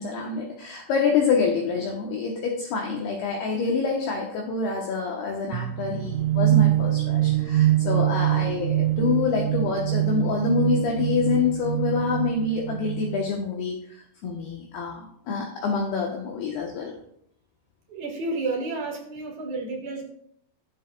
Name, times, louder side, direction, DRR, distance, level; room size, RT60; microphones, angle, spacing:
voice 1, 0.0-16.9, left 5 dB, 70° left, -1 dB, 2.7 m, -26 dB
sound 1, 5.5-13.3, right 14 dB, 90° right, 3.0 m, -24 dB
voice 2, 17.9-20.0, right 3 dB, 55° right, 0 dB, 2.2 m, -31 dB
17.5 x 7.6 x 2.3 m, 0.71 s
omnidirectional pair, 5.3 m